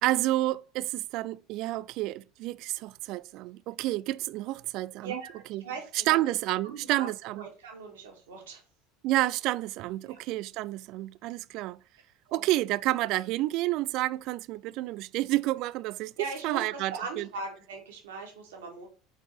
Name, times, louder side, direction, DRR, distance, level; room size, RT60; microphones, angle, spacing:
voice 1, 0.0-5.2 5.5-5.6 6.1-7.4 9.0-11.8 12.3-16.1 16.4-17.3, right 17 dB, 55° right, 0.3 m, -29 dB
voice 2, 5.0-6.2 6.6-8.6 10.0-10.2 12.3-12.5 16.2-18.9, right 4 dB, 75° right, 2.2 m, -40 dB
4.9 x 4.4 x 4.8 m
hypercardioid pair, 75°, 0 cm